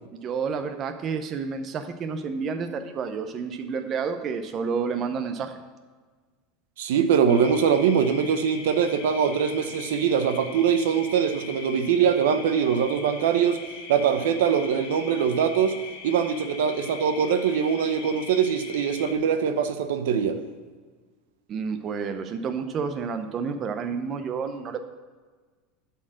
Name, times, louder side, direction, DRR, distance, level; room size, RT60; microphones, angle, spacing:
voice 1, 0.1-5.5 21.5-24.8, right 5 dB, 25° right, 7 dB, 0.6 m, -30 dB
voice 2, 6.8-13.6 13.9-15.7 16.0-20.4, right 7 dB, 85° right, 8 dB, 0.9 m, -23 dB
sound 1, 7.3-19.1, left 5 dB, 85° left, 1.4 m, -41 dB
11.0 x 4.4 x 7.5 m, 1.4 s
supercardioid pair, 170°, 0 cm